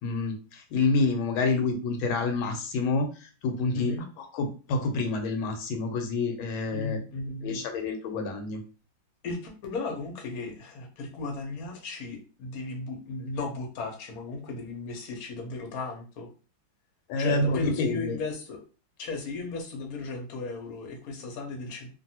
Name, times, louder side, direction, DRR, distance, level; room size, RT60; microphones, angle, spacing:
voice 1, 0.0-7.0 7.4-8.6 17.1-18.2, left 3 dB, 80° left, 5 dB, 1.4 m, -28 dB
voice 2, 3.7-4.0 6.7-7.6 9.2-16.3 17.2-18.6 19.0-21.9, left 3 dB, 60° left, 1 dB, 1.1 m, -35 dB
2.9 x 2.6 x 2.7 m, 0.35 s
omnidirectional pair, 2.2 m